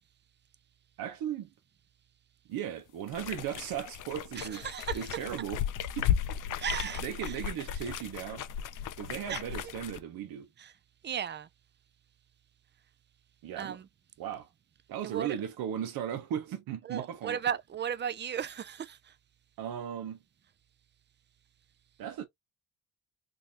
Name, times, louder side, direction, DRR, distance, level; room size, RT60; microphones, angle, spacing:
voice 1, 1.0-1.5 2.5-4.7 4.9-5.6 6.0-6.1 6.8-8.5 9.0-10.5 13.4-13.8 14.2-14.5 14.9-17.4 19.6-20.2 22.0-22.3, right 9 dB, 85° right, 0.9 m, -37 dB
sound 1, 3.1-10.0, left 9 dB, 60° left, 0.5 m, -35 dB
voice 2, 4.4-5.0 6.6-7.4 9.3-9.4 10.6-10.7 11.0-11.5 13.6-13.9 15.0-15.4 16.8-19.1, right 8 dB, 30° right, 0.4 m, -35 dB
3.8 x 2.6 x 2.8 m
cardioid pair, 130°, 35 cm